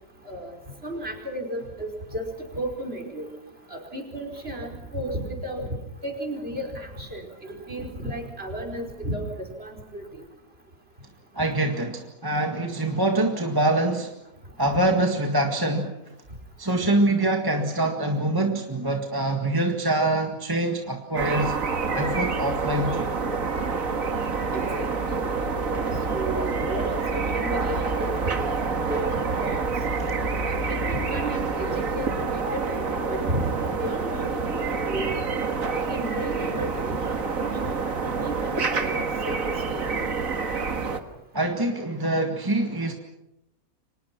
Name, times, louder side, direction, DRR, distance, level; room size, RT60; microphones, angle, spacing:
voice 1, 0.2-0.6 0.8-2.2 2.5-3.3 3.7-10.2 24.5-28.5 28.9-29.7 30.5-35.1 35.7-37.0 37.3-39.4 39.7-39.8, right 1 dB, 40° right, 2 dB, 5.1 m, -34 dB
voice 2, 11.3-14.1 14.6-15.9 16.6-21.5 21.9-23.1 30.0-30.1 41.3-42.9, right 1 dB, 15° right, 3 dB, 1.9 m, -24 dB
sound 1, 21.1-41.0, right 4 dB, 65° right, 2.3 m, -27 dB
30.0 x 25.0 x 6.0 m, 0.90 s
omnidirectional pair, 1.5 m